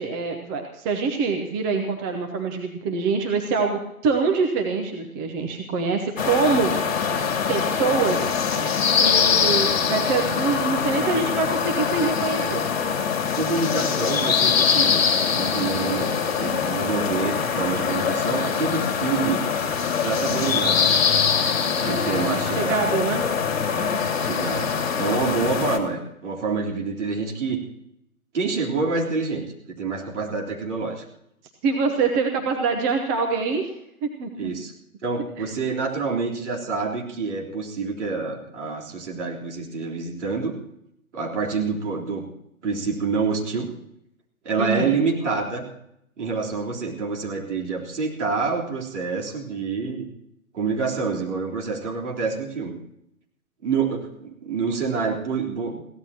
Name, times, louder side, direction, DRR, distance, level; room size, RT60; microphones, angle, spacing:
voice 1, 0.0-6.7 7.5-8.3 8.9-12.6 21.7-23.2 23.7-24.0 31.6-33.7 34.0-34.5 35.4-35.5 44.6-45.0, right 4 dB, 15° right, 3 dB, 0.8 m, -25 dB
sound 1, 6.2-25.8, left 6 dB, 45° left, 2.7 m, -23 dB
voice 2, 10.7-11.2 12.4-12.5 13.2-15.1 15.3-19.5 20.0-21.1 21.8-23.0 24.2-27.6 28.3-31.0 34.4-34.7 35.0-40.6 41.1-42.2 42.6-43.7 44.4-45.7 46.2-50.1 50.5-52.7 53.6-55.8, right 4 dB, 55° right, -1 dB, 3.7 m, -27 dB
22.5 x 16.5 x 2.9 m, 0.79 s
figure-of-eight pair, 135°, 43 cm